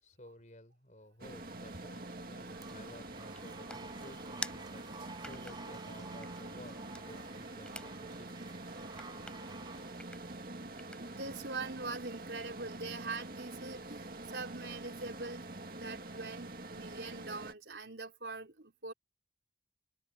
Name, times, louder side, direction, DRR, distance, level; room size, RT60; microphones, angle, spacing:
voice 1, 0.0-4.8 5.2-8.4, left 1 dB, 45° left, 4.9 m, -55 dB
sound 1, 1.2-17.5, right 2 dB, 55° right, 2.1 m, -46 dB
sound 2, 2.5-10.3, right 3 dB, 25° right, 7.8 m, -53 dB
sound 3, 2.7-11.4, left 1 dB, 5° left, 6.4 m, -51 dB
voice 2, 11.0-18.9, right 3 dB, 75° right, 3.5 m, -43 dB
head